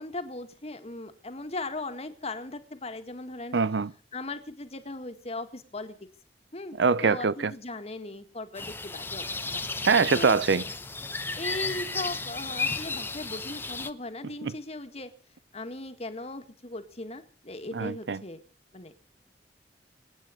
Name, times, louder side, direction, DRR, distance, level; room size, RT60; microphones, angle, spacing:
voice 1, 0.0-3.6 4.1-6.1 6.5-9.3 9.5-9.6 10.1-10.4 11.4-15.1 15.5-18.4 18.7-18.9, left 2 dB, 35° left, 1.9 m, -38 dB
voice 2, 3.5-3.9 6.8-7.5 9.8-10.6 14.4-14.5 17.7-18.2, right 5 dB, 85° right, 0.6 m, -23 dB
sound 1, 8.6-13.9, left 3 dB, 15° left, 0.9 m, -33 dB
26.5 x 9.1 x 5.2 m
head